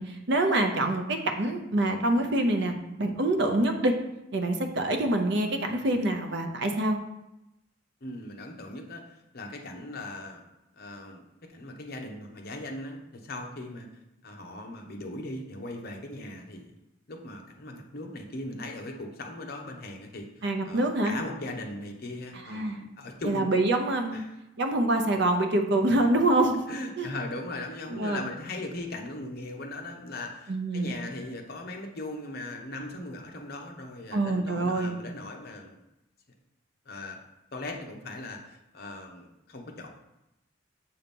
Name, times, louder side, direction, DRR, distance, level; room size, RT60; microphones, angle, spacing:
voice 1, 0.0-3.9 4.3-7.0 20.4-21.1 22.5-22.8 23.2-24.2 24.6-26.6 27.0-27.1 27.9-28.2 30.5-30.9 34.1-35.0, right 1 dB, 55° right, 5 dB, 0.7 m, -26 dB
voice 2, 8.0-10.4 10.8-11.2 11.5-13.9 14.2-16.7 17.1-23.5 24.1-24.3 26.7-35.8 36.9-37.2 37.5-39.9, left 2 dB, 50° left, 2 dB, 0.8 m, -39 dB
7.1 x 2.9 x 5.3 m, 0.91 s
head